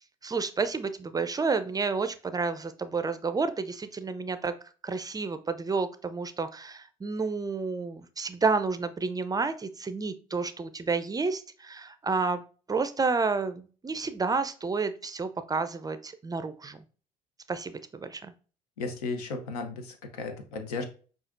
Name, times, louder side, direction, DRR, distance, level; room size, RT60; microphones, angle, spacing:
voice 1, 0.2-4.5 4.8-12.4 12.7-16.8 17.5-17.7 18.0-18.3, right 4 dB, 20° right, 10 dB, 0.4 m, -30 dB
voice 2, 18.8-20.8, left 4 dB, 80° left, 6 dB, 0.7 m, -35 dB
5.6 x 2.5 x 2.5 m, 0.38 s
hypercardioid pair, 55°, 19 cm